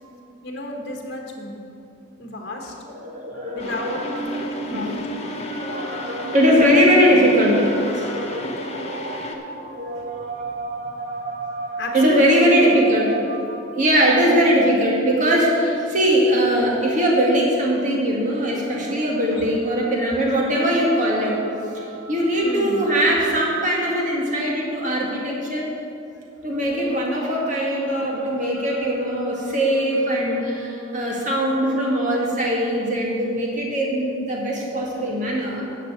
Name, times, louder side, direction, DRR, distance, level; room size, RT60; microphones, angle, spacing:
voice 1, 0.4-1.6 2.2-2.7 3.5-4.4 4.7-5.0 11.8-12.5 14.1-14.3 19.3-19.4 20.3-20.4 22.4-22.9, left 1 dB, 55° left, 1 dB, 1.3 m, -31 dB
voice 2, 2.9-25.7 26.4-35.6, equal, 40° right, -3 dB, 2.0 m, -21 dB
sound 1, 3.6-9.3, left 2 dB, 30° left, 0.8 m, -34 dB
10.0 x 6.2 x 8.0 m, 2.7 s
head